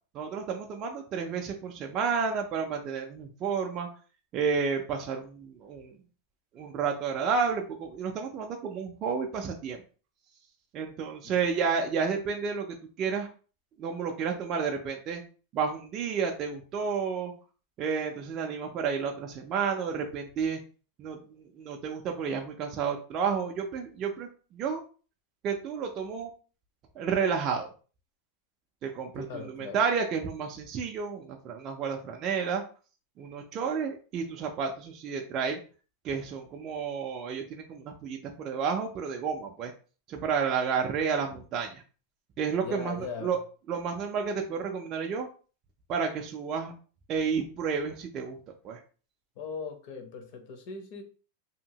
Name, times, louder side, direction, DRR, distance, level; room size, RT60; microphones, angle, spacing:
voice 1, 0.1-3.9 4.3-5.9 6.5-9.8 10.7-13.3 13.8-15.2 15.5-17.3 17.8-20.6 21.0-24.8 25.4-26.3 27.0-27.7 28.8-32.6 33.2-35.6 36.0-39.7 40.1-41.8 42.4-43.4 43.7-45.3 45.9-46.7 47.1-48.4 48.6-48.8, right 6 dB, 25° right, 2 dB, 0.3 m, -31 dB
voice 2, 29.1-29.8 42.6-43.4 49.4-51.0, left 5 dB, 40° left, 5 dB, 0.6 m, -39 dB
2.7 x 2.6 x 2.8 m, 0.38 s
supercardioid pair, 175°, 0 cm